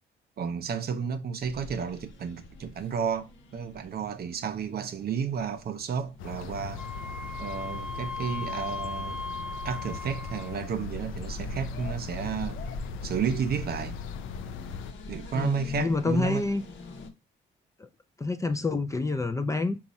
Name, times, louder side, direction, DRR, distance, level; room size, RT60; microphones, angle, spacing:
voice 1, 0.4-6.8 7.4-9.2 9.6-12.6 13.0-14.0 15.1-16.4, right 7 dB, 50° right, 0.6 m, -32 dB
sound 1, 1.4-17.1, left 2 dB, 70° left, 0.8 m, -44 dB
sound 2, 6.2-14.9, left 6 dB, 85° left, 0.4 m, -40 dB
Wind instrument woodwind instrument, 6.8-10.7, left 2 dB, ahead, 0.8 m, -38 dB
voice 2, 15.3-16.6 17.8-17.9 18.2-19.8, left 3 dB, 15° left, 0.4 m, -28 dB
4.0 x 2.4 x 4.0 m
cardioid pair, 90°, 20 cm